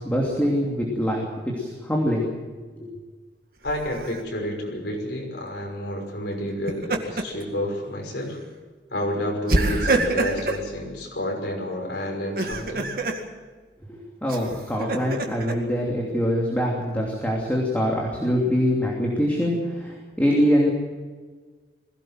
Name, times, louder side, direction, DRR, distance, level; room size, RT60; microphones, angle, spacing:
voice 1, 0.0-2.9 13.9-20.7, equal, 10° left, -2 dB, 2.9 m, -24 dB
voice 2, 3.6-8.4 8.9-13.0, left 1 dB, 75° left, 1 dB, 5.8 m, -30 dB
Laughter, 3.6-4.2 6.5-7.4 7.8-8.0 9.5-10.6 12.2-13.2 14.3-15.5, right 2 dB, 50° right, 2.0 m, -26 dB
21.5 x 16.5 x 7.6 m, 1.4 s
head